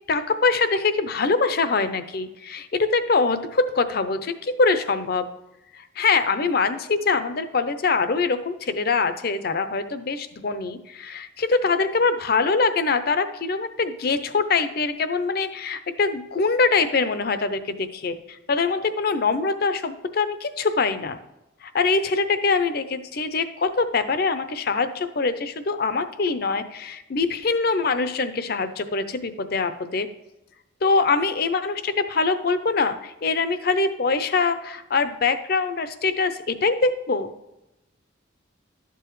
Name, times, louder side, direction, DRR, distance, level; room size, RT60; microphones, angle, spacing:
voice 1, 0.1-5.3 6.0-21.2 21.6-30.1 30.8-37.3, left 4 dB, 50° left, 11 dB, 0.6 m, -23 dB
12.0 x 6.9 x 3.1 m, 0.94 s
head